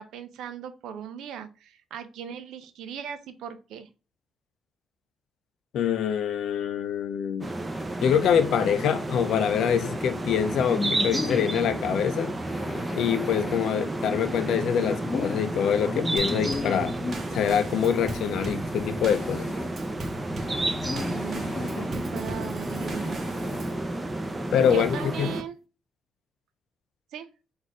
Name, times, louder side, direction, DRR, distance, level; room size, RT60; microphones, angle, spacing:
voice 1, 0.0-3.9 21.1-23.2 24.7-25.6 27.1-27.3, right 8 dB, 85° right, 0.5 m, -38 dB
voice 2, 5.7-7.5 8.0-12.3 12.9-16.9 17.3-19.5 24.5-25.3, left 8 dB, 75° left, 0.5 m, -25 dB
sound 1, 7.4-25.4, right 1 dB, 20° right, 0.7 m, -32 dB
sound 2, 10.2-11.7 12.4-13.6 14.3-17.2 17.9-19.7 20.4-21.9 22.6-23.7 24.2-24.3 24.6-25.4, left 3 dB, 30° left, 0.8 m, -36 dB
Drum kit / Snare drum / Bass drum, 16.2-23.8, right 2 dB, 45° right, 1.1 m, -40 dB
4.2 x 2.6 x 4.7 m
cardioid pair, 95°, 0 cm